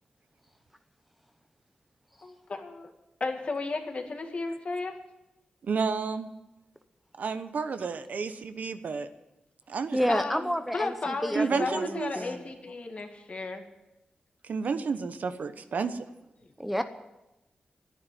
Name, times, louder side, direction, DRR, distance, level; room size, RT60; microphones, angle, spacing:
voice 1, 2.2-2.9 3.2-4.9 10.1-13.6 16.4-16.5, left 3 dB, 50° left, 4 dB, 2.0 m, -34 dB
voice 2, 5.6-6.3 7.2-9.1 9.7-10.0 11.3-12.1 14.4-16.0, right 5 dB, 70° right, 10 dB, 1.0 m, -31 dB
voice 3, 9.9-12.4 16.6-16.8, equal, 5° right, 9 dB, 0.8 m, -30 dB
11.0 x 10.5 x 9.1 m, 0.97 s
wide cardioid pair, 95°, 3 cm